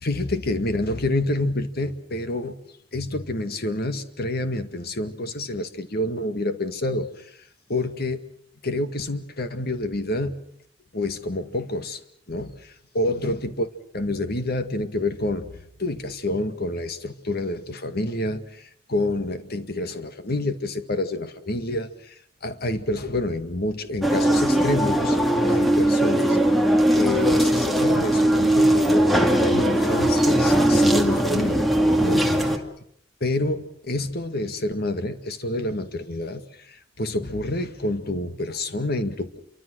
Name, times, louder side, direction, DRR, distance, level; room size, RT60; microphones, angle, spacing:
voice 1, 0.0-2.6 2.9-7.4 7.7-8.2 8.6-10.3 10.9-12.0 12.3-13.7 13.9-15.5 15.8-25.2 25.5-26.4 26.9-32.4 33.2-39.4, left 1 dB, 55° left, 9 dB, 1.9 m, -28 dB
sound 1, 24.0-32.6, right 1 dB, ahead, 2.3 m, -19 dB
28.5 x 24.5 x 6.4 m, 0.68 s
head